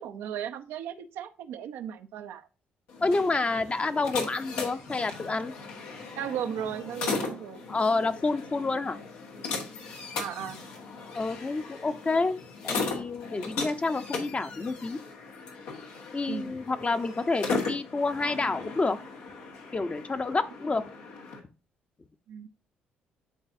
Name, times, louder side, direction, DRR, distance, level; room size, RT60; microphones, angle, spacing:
voice 1, 0.0-2.5 6.1-7.6 10.2-10.6 16.3-16.5 22.3-22.5, right 9 dB, 75° right, 8 dB, 0.7 m, -36 dB
sound 1, 2.9-21.4, left 4 dB, 85° left, 1.5 m, -37 dB
voice 2, 3.0-5.5 7.7-9.0 11.1-12.4 12.6-15.0 16.1-19.0 19.7-20.9, left 3 dB, 30° left, 9 dB, 0.8 m, -28 dB
11.0 x 4.0 x 2.7 m, 0.32 s
supercardioid pair, 55°, 4 cm